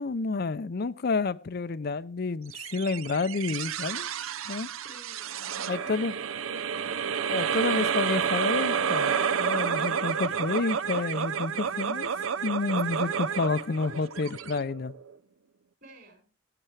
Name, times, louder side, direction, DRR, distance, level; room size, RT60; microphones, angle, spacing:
voice 1, 0.0-4.1 4.4-4.7 5.7-6.1 7.3-9.1 9.4-12.1 12.4-14.9, left 4 dB, 50° left, 0.5 m, -29 dB
sound 1, 2.5-15.1, right 7 dB, 80° right, 0.7 m, -30 dB
voice 2, 4.8-7.1 15.8-16.2, right 1 dB, 50° right, 5.3 m, -52 dB
15.5 x 9.3 x 3.3 m
head